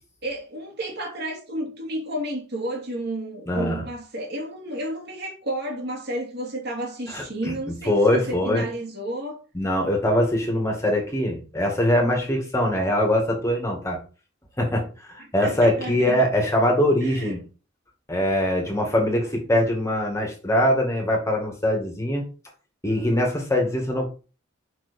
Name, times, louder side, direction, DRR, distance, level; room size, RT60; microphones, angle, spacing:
voice 1, 0.2-9.4 15.2-16.3 17.0-17.4, right 1 dB, 55° right, 2.7 m, -31 dB
voice 2, 3.5-3.8 7.1-7.2 7.9-8.6 9.5-14.0 14.6-17.4 18.1-22.2 22.8-24.1, left 1 dB, 15° left, 2.2 m, -22 dB
6.2 x 5.9 x 4.4 m
head